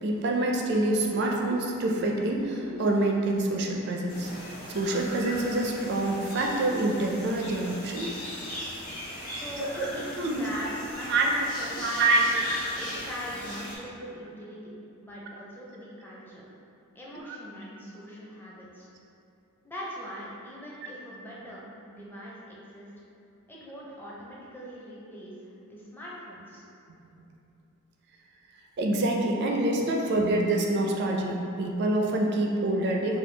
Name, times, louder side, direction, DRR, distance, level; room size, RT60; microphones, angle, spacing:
voice 1, 0.0-4.3 4.7-8.1 9.6-10.4 11.1-11.3 11.8-12.4 17.3-17.4 28.8-33.2, right 2 dB, 50° right, 0 dB, 0.4 m, -26 dB
sound 1, 4.1-13.8, left 1 dB, 85° left, 1.4 m, -39 dB
voice 2, 9.4-12.4 12.7-14.7 15.0-16.5 16.9-18.9 19.6-22.9 23.5-25.4 25.7-26.6, equal, 10° left, -6 dB, 0.5 m, -41 dB
4.6 x 2.3 x 3.2 m, 2.7 s
head